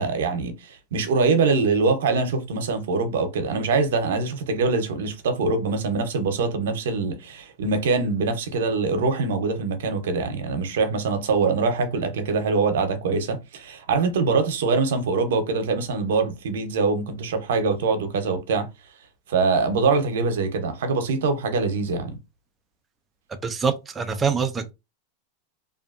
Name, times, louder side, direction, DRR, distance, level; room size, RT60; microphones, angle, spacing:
voice 1, 0.0-18.7 19.3-22.2, right 4 dB, 85° right, 0.7 m, -23 dB
voice 2, 23.4-24.7, right 5 dB, 15° right, 0.3 m, -25 dB
2.6 x 2.5 x 2.4 m
supercardioid pair, 145°, 0 cm